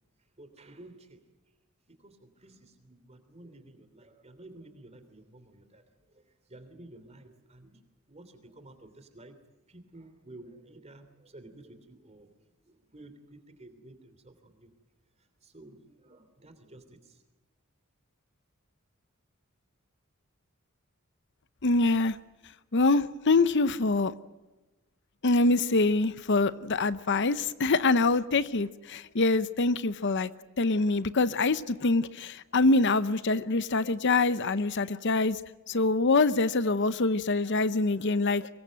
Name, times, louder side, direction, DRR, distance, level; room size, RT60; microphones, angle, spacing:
voice 1, 0.4-1.2 2.0-7.8 8.1-9.4 9.7-12.3 12.6-14.7 15.2-17.2, right 2 dB, 30° right, 3.1 m, -52 dB
voice 2, 21.6-22.2 22.7-24.1 25.2-30.3 30.6-35.4 35.7-38.5, left 3 dB, 55° left, 0.8 m, -25 dB
24.5 x 21.5 x 7.7 m
head